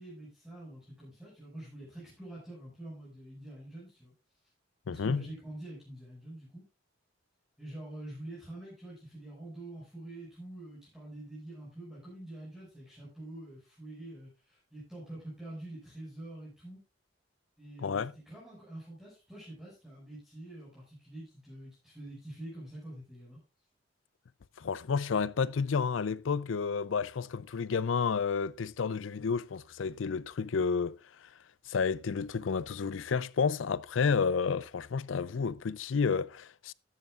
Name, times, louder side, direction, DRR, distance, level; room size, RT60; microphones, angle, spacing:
voice 1, 0.0-4.1 4.9-6.6 7.6-16.8 17.6-23.4, right 1 dB, 5° right, 6.1 m, -46 dB
voice 2, 4.9-5.3 17.8-18.1 24.6-31.0 31.7-36.7, left 5 dB, 80° left, 0.5 m, -30 dB
13.5 x 11.5 x 2.5 m
head